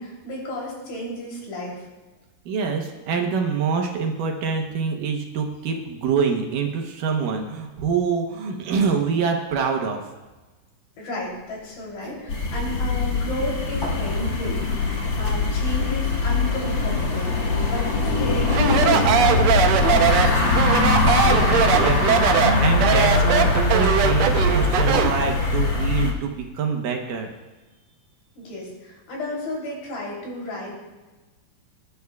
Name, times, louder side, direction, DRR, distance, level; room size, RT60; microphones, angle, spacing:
voice 1, 0.0-1.9 11.0-14.6 14.9-20.6 28.4-30.7, left 1 dB, 80° left, -3 dB, 5.1 m, -33 dB
voice 2, 2.5-10.0 21.2-27.3, right 5 dB, 70° right, 2 dB, 2.5 m, -25 dB
sound 1, 11.2-25.1, equal, 15° left, 4.1 m, -41 dB
sound 2, 12.3-26.1, left 3 dB, 45° left, 1.7 m, -22 dB
Speech, 18.5-25.2, right 7 dB, 90° right, 1.5 m, -21 dB
22.0 x 11.0 x 2.4 m, 1.2 s
omnidirectional pair, 4.2 m